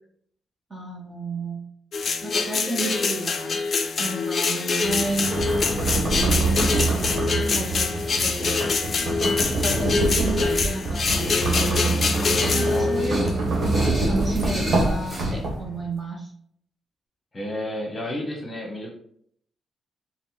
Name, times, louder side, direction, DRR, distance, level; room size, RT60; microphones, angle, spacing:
voice 1, 0.7-1.6 2.2-3.6 4.0-5.4 5.9-6.4 6.7-7.9 8.2-8.7 9.5-12.1 12.5-13.2 13.5-13.6 14.0-16.3, right 2 dB, 25° right, -1 dB, 0.8 m, -32 dB
sound 1, 1.9-13.3, left 4 dB, 40° left, 0.4 m, -25 dB
sound 2, 4.8-15.8, right 2 dB, 65° right, 1.1 m, -25 dB
sound 3, 12.3-15.4, equal, 10° right, 1.3 m, -33 dB
voice 2, 17.3-18.9, left 1 dB, 15° left, 0 dB, 1.0 m, -32 dB
4.8 x 2.1 x 3.8 m, 0.65 s
wide cardioid pair, 155°, 0 cm